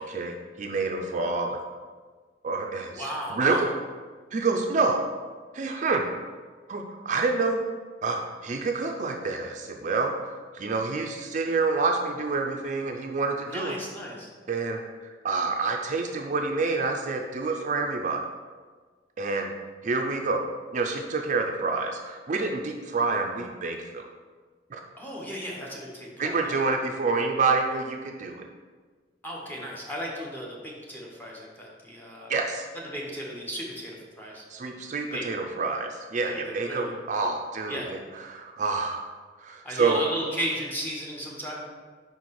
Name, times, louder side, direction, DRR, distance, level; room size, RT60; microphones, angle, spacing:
voice 1, 0.0-1.6 2.4-3.7 4.3-5.0 5.5-6.1 6.7-7.6 8.0-13.8 14.5-18.2 19.2-19.5 19.8-20.4 20.7-24.1 24.7-24.8 26.2-28.5 32.3-32.7 34.5-38.0 38.3-39.1 39.4-40.0, right 4 dB, 45° right, 3 dB, 0.4 m, -28 dB
voice 2, 2.9-3.7 13.4-14.3 25.0-26.6 29.2-32.3 32.9-34.4 35.1-35.3 36.3-36.9 37.7-37.9 39.6-41.6, equal, 10° left, -3 dB, 1.1 m, -35 dB
5.2 x 4.7 x 4.2 m, 1.5 s
head